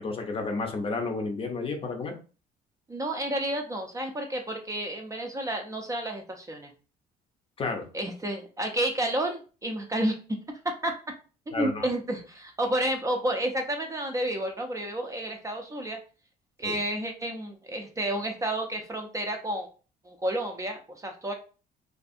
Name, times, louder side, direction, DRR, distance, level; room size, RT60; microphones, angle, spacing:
voice 1, 0.0-2.1 7.6-7.9 11.5-11.9 16.6-16.8, left 3 dB, 35° left, 4 dB, 0.6 m, -31 dB
voice 2, 2.9-6.7 7.9-10.1 10.6-11.0 11.5-16.0 16.6-19.7 20.0-21.3, right 1 dB, 20° right, 3 dB, 0.4 m, -30 dB
2.5 x 2.3 x 2.5 m, 0.35 s
cardioid pair, 110°, 17 cm